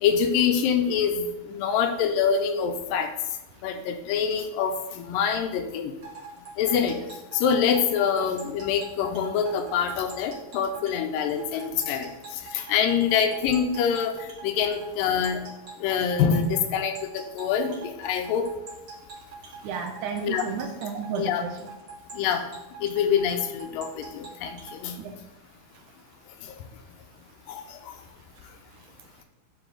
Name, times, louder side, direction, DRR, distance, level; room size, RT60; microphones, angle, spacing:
voice 1, 0.0-1.2 1.5-3.1 3.6-5.9 6.6-7.0 7.3-12.1 12.5-14.2 14.4-15.4 15.8-18.5 20.2-20.5 21.2-21.4 22.1-22.4 22.8-25.0 27.5-27.6, left 7 dB, 85° left, 7 dB, 2.3 m, -25 dB
sound 1, 6.0-24.8, right 4 dB, 45° right, 1.8 m, -43 dB
voice 2, 19.6-21.5 25.0-25.2, right 6 dB, 75° right, 4 dB, 2.0 m, -32 dB
9.8 x 5.5 x 3.8 m, 1.0 s
omnidirectional pair, 4.0 m